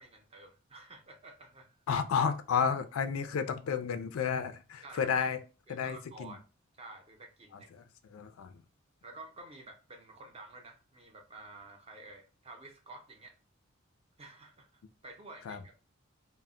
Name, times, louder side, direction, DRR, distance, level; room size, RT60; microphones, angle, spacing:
voice 1, 0.0-1.8 4.8-5.3 5.7-6.4 6.8-7.7 9.0-13.3 14.2-14.7 15.0-15.7, right 2 dB, 30° right, 0.5 m, -51 dB
voice 2, 1.9-5.4 5.7-6.4 7.5-7.8 8.1-8.5 15.5-15.6, left 6 dB, 80° left, 0.3 m, -32 dB
2.1 x 2.0 x 3.6 m
head